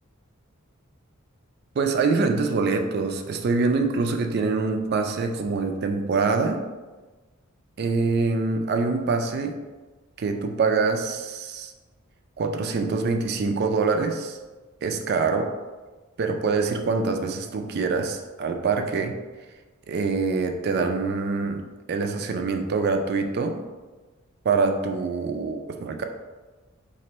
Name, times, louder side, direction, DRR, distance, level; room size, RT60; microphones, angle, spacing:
voice 1, 1.8-6.6 7.8-9.6 10.2-11.7 12.4-14.4 14.8-15.5 16.2-19.1 19.9-21.6 21.9-23.6 24.4-26.0, right 4 dB, 50° right, 5 dB, 0.3 m, -25 dB
4.1 x 2.6 x 2.9 m, 1.3 s
head